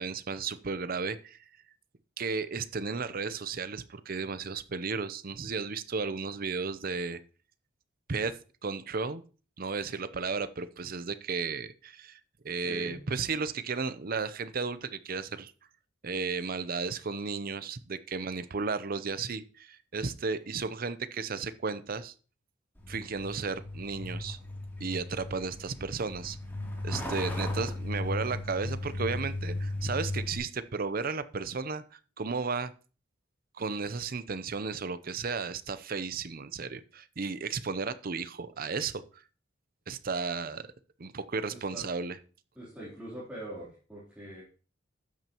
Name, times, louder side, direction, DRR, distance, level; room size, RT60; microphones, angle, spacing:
voice 1, 0.0-1.4 2.2-7.2 8.1-8.4 8.6-9.2 9.6-12.2 12.4-15.5 16.0-22.1 22.9-24.4 24.8-26.4 26.8-32.7 33.6-39.2 39.9-40.7 41.0-42.2, right 4 dB, 50° right, 13 dB, 0.7 m, -34 dB
voice 2, 12.6-13.0 41.5-41.8 42.6-44.4, right 1 dB, 10° right, -9 dB, 3.6 m, -43 dB
Truck, 22.8-30.4, left 1 dB, 10° left, 3.0 m, -36 dB
12.5 x 9.0 x 3.0 m, 0.37 s
head